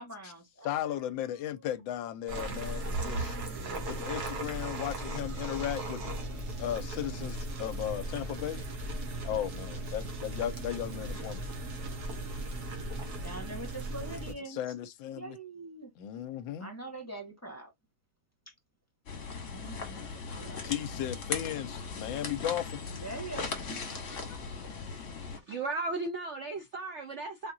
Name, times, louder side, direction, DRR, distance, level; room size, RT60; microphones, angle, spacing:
voice 1, 0.0-1.0 1.4-1.7 2.8-4.2 13.2-14.7 15.1-15.9 16.6-17.7 18.4-18.5 19.4-20.6 22.9-24.4, right 2 dB, 10° left, 1.7 m, -45 dB
voice 2, 0.6-3.4 3.9-6.1 6.6-8.6 9.2-11.4 14.5-15.4 16.0-16.7 20.6-23.0, left 11 dB, 80° left, 1.3 m, -36 dB
sound 1, 2.3-14.3, right 2 dB, 55° right, 1.5 m, -37 dB
sound 2, 19.1-25.4, left 4 dB, 45° left, 1.5 m, -38 dB
voice 3, 25.1-27.5, right 3 dB, 80° right, 0.6 m, -36 dB
4.4 x 3.6 x 2.6 m
omnidirectional pair, 2.2 m